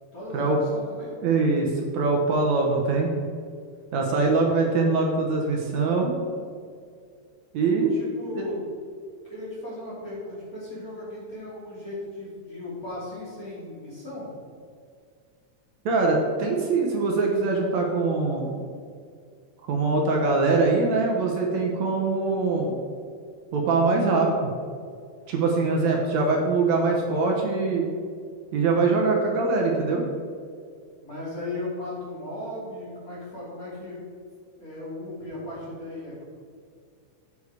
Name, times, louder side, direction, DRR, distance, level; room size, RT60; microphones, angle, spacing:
voice 1, 0.1-1.1 7.9-8.6 9.2-14.3 22.3-22.7 31.0-34.0 34.6-36.3, left 2 dB, 30° left, -7 dB, 2.8 m, -37 dB
voice 2, 1.2-3.1 3.9-6.1 7.5-7.9 8.3-8.5 15.9-18.6 19.7-22.7 23.5-24.5 25.3-27.8 28.5-30.0, right 3 dB, 70° right, 0 dB, 2.1 m, -23 dB
8.3 x 7.1 x 4.8 m, 2.2 s
omnidirectional pair, 3.5 m